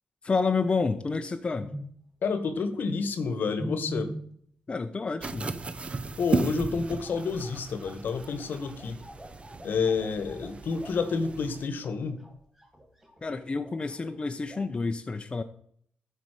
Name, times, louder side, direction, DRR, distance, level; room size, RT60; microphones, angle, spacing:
voice 1, 0.2-1.7 4.7-5.5 13.2-15.4, left 4 dB, 30° left, 7 dB, 0.6 m, -29 dB
sound 1, 1.6-2.0 3.6-4.4 6.6-6.7 6.9-14.1 14.4-14.9, right 1 dB, 5° right, 2.7 m, -43 dB
voice 2, 2.2-4.1 6.2-9.0 9.6-12.2, left 5 dB, 70° left, 10 dB, 1.2 m, -29 dB
sound 2, 5.2-11.7, right 3 dB, 35° right, 0.7 m, -35 dB
12.0 x 5.6 x 4.9 m, 0.63 s
cardioid pair, 105°, 3 cm